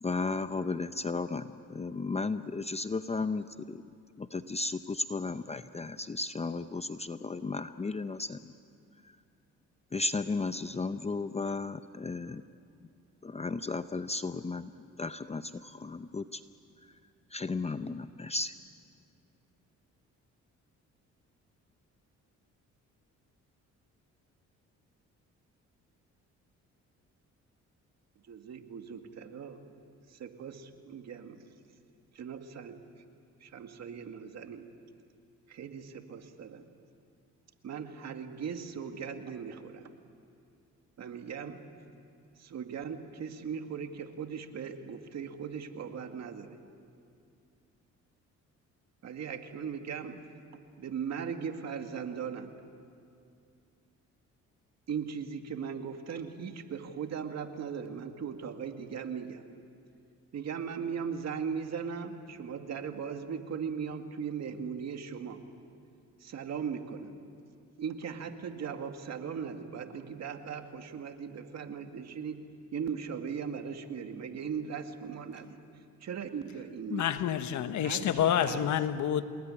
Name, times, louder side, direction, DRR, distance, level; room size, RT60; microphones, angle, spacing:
voice 1, 0.0-3.8 4.2-8.5 9.9-12.4 13.2-14.7 15.0-16.4 17.3-18.5, left 3 dB, 20° left, 0.7 m, -34 dB
voice 2, 28.3-29.6 30.2-31.4 32.1-32.8 33.4-34.7 35.5-36.6 37.6-39.8 41.0-41.6 42.4-46.6 49.0-50.2 50.8-52.5 54.9-59.4 60.3-65.4 66.2-67.1 67.8-72.4 72.7-75.6 76.0-77.1 77.8-78.6, right 7 dB, 60° right, 2.2 m, -38 dB
voice 3, 76.9-79.2, left 10 dB, 70° left, 1.3 m, -28 dB
29.0 x 20.5 x 9.9 m
cardioid pair, 90°, 30 cm